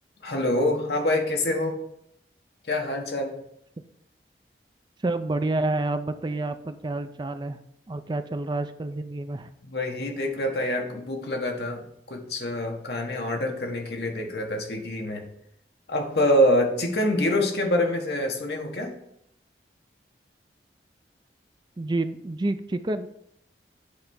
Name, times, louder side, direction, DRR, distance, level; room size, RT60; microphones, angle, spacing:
voice 1, 0.2-1.8 2.7-3.4 9.6-11.8 12.1-15.2 15.9-18.9, left 1 dB, 65° left, 2 dB, 1.3 m, -25 dB
voice 2, 5.0-7.6 7.9-9.5 21.8-23.1, right 2 dB, 25° right, 9 dB, 0.4 m, -28 dB
8.3 x 3.3 x 5.4 m, 0.77 s
head